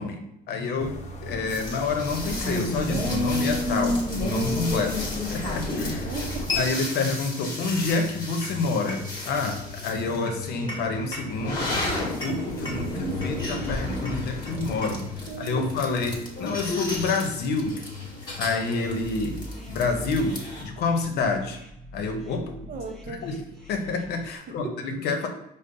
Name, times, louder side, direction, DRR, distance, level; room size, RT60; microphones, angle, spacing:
voice 1, 0.0-6.1 6.6-15.0 15.4-17.8 18.4-21.6 21.9-22.6 23.1-23.4 23.7-25.3, left 3 dB, 75° left, 5 dB, 0.7 m, -28 dB
sound 1, 0.8-6.7, equal, 40° left, 0.7 m, -38 dB
sound 2, 1.5-20.6, left 2 dB, 25° left, 1.2 m, -31 dB
voice 2, 6.0-6.6 14.9-15.7 22.7-23.3 24.5-24.8, right 5 dB, 55° right, 4 dB, 0.6 m, -37 dB
sound 3, 19.0-24.4, equal, ahead, 0.8 m, -43 dB
5.2 x 2.0 x 3.8 m, 0.79 s
cardioid pair, 110°, 17 cm